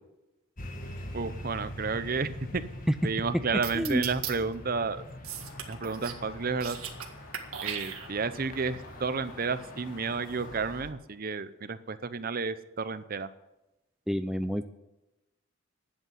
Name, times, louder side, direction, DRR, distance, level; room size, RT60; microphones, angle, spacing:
sound 1, 0.6-10.9, left 1 dB, 40° left, 1.8 m, -43 dB
voice 1, 1.1-2.6 3.0-5.0 5.7-6.8 7.6-13.3, right 4 dB, 45° right, 13 dB, 0.7 m, -31 dB
sound 2, 3.6-4.3 5.2-6.2 6.5-7.1 7.3-8.4, right 8 dB, 90° right, 1.7 m, -37 dB
sound 3, 5.3-10.8, left 3 dB, 80° left, 2.7 m, -51 dB
voice 2, 14.1-14.6, equal, ahead, 8 dB, 0.4 m, -29 dB
11.5 x 8.3 x 9.7 m, 0.99 s
head